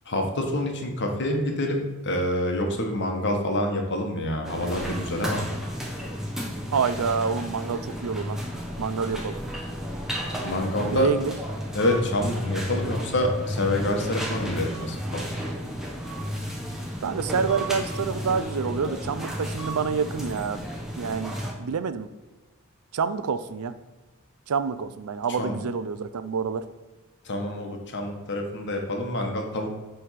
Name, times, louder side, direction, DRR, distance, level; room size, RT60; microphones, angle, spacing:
voice 1, 0.0-5.4 10.4-11.1 11.7-15.3 25.4-25.5 27.2-29.8, left 1 dB, 55° left, 2 dB, 1.2 m, -27 dB
sound 1, 4.4-21.5, equal, ahead, 1.1 m, -33 dB
voice 2, 6.7-8.4 8.8-9.4 10.9-11.3 17.0-20.6 21.0-21.3 21.6-22.1 22.9-23.8 24.5-26.7, right 5 dB, 85° right, 13 dB, 0.4 m, -27 dB
7.6 x 3.4 x 5.7 m, 1.2 s
head